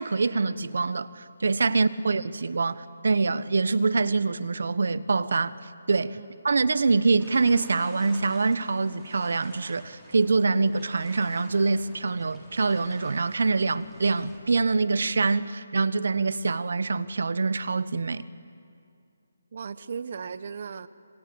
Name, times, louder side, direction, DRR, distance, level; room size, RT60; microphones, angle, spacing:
voice 1, 0.0-5.5 5.9-6.2 6.4-18.3, right 4 dB, 70° right, 1.1 m, -25 dB
sound 1, 7.2-14.4, equal, 5° left, 4.0 m, -50 dB
voice 2, 19.5-20.9, right 6 dB, 45° right, 1.1 m, -36 dB
26.5 x 25.5 x 8.8 m
hypercardioid pair, 170°, 0 cm